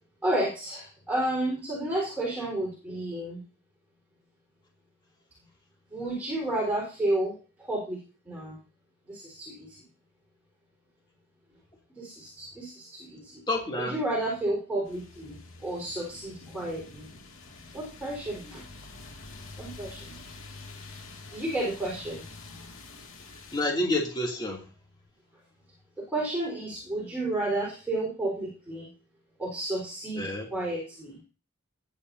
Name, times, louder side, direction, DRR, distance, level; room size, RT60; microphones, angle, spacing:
voice 1, 0.2-3.4 5.9-8.6 9.1-9.8 11.9-13.4 13.8-17.1 17.7-18.6 19.6-20.2 21.3-22.2 26.0-28.9 29.4-30.2 30.5-31.2, right 1 dB, 10° right, -5 dB, 4.3 m, -31 dB
voice 2, 13.5-13.9 23.5-24.6 30.2-30.5, left 1 dB, 20° left, -1 dB, 2.7 m, -28 dB
sound 1, 14.8-23.7, left 3 dB, 65° left, 2.4 m, -46 dB
19.0 x 8.4 x 2.7 m, 0.34 s
head